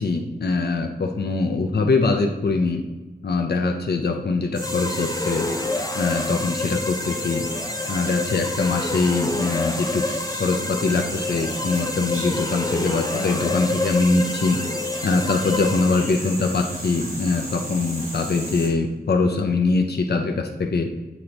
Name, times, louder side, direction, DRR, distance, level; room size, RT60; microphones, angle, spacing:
voice 1, 0.0-2.8 3.2-5.5 5.9-7.5 7.9-10.0 10.4-14.6 15.0-20.9, left 3 dB, 85° left, 3 dB, 0.6 m, -23 dB
sound 1, 4.5-18.7, right 1 dB, 60° right, 2.1 m, -34 dB
sound 2, 4.6-16.4, left 2 dB, 20° left, 0.6 m, -29 dB
8.2 x 2.9 x 5.2 m, 1.2 s
wide cardioid pair, 75°, 17 cm